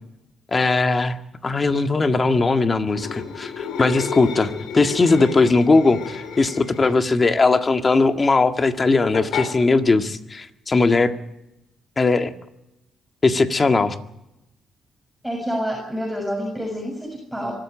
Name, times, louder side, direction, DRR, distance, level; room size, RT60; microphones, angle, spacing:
voice 1, 0.5-1.2 1.4-11.1 12.0-12.3 13.2-14.0, left 3 dB, 30° left, 8 dB, 1.8 m, -19 dB
sound 1, 2.9-7.1 9.1-9.5, left 6 dB, 85° left, 4.2 m, -31 dB
voice 2, 15.2-17.5, equal, ahead, -1 dB, 6.9 m, -28 dB
24.5 x 13.5 x 8.7 m, 0.87 s
cardioid pair, 90°, 0 cm